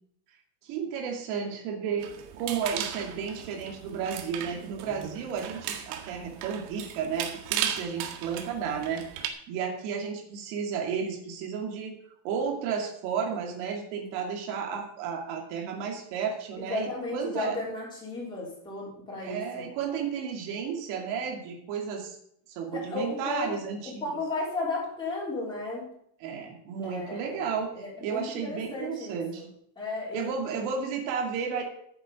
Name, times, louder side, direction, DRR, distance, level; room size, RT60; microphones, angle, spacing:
voice 1, 0.6-12.0 12.2-17.6 19.2-22.2 22.5-24.1 26.2-27.7 28.0-29.4 30.1-31.6, right 6 dB, 65° right, 1 dB, 2.5 m, -33 dB
sound 1, 2.0-9.3, right 9 dB, 90° right, 2.0 m, -36 dB
voice 2, 16.6-19.7 22.7-23.6 24.0-25.9 26.8-27.5 27.8-29.5 29.8-30.3, left 3 dB, 10° left, -6 dB, 4.0 m, -34 dB
14.5 x 7.6 x 5.2 m, 0.69 s
cardioid pair, 180°, 47 cm